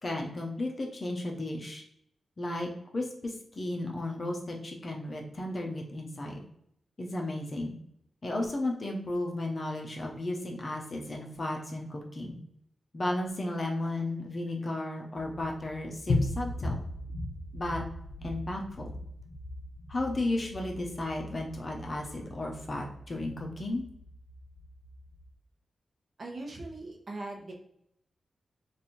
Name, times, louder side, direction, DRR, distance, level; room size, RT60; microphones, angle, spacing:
voice 1, 0.0-1.8 2.4-6.4 7.0-7.7 8.2-12.4 12.9-16.8 17.5-17.8 18.2-19.0 19.9-23.8, left 1 dB, 40° left, 1 dB, 0.7 m, -34 dB
sound 1, 15.1-25.3, left 2 dB, 70° left, 0.9 m, -38 dB
voice 2, 26.2-27.5, right 2 dB, 50° right, 0 dB, 0.8 m, -40 dB
3.3 x 2.6 x 4.2 m, 0.73 s
wide cardioid pair, 105°, 0 cm